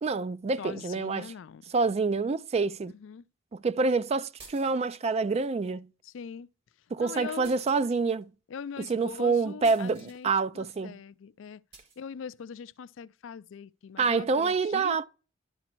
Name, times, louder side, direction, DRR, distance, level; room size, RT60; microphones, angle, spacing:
voice 1, 0.0-1.3 1.7-2.9 3.5-5.9 6.9-8.3 8.9-11.0 14.0-15.0, right 4 dB, 35° right, 0.3 m, -27 dB
voice 2, 0.6-1.6 2.9-3.2 6.0-6.5 7.0-7.5 8.5-11.6 12.0-15.0, left 6 dB, 70° left, 0.4 m, -42 dB
sound 1, 4.4-5.1 7.4-8.2 9.6-10.2 11.7-12.0, right 4 dB, 55° right, 2.5 m, -52 dB
11.5 x 4.0 x 4.5 m
head